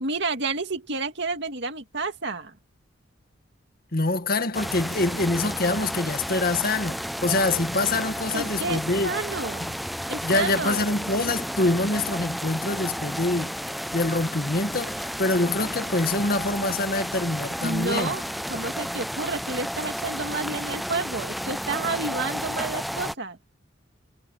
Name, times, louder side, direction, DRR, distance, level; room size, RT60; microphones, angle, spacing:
voice 1, 0.0-2.5 8.3-9.7 10.1-10.9 17.6-23.4, right 3 dB, 65° right, 2.3 m, -30 dB
voice 2, 3.9-9.1 9.6-9.8 10.2-13.6 13.9-18.1, left 2 dB, 50° left, 1.9 m, -25 dB
sound 1, 4.5-23.1, equal, ahead, 0.4 m, -32 dB
head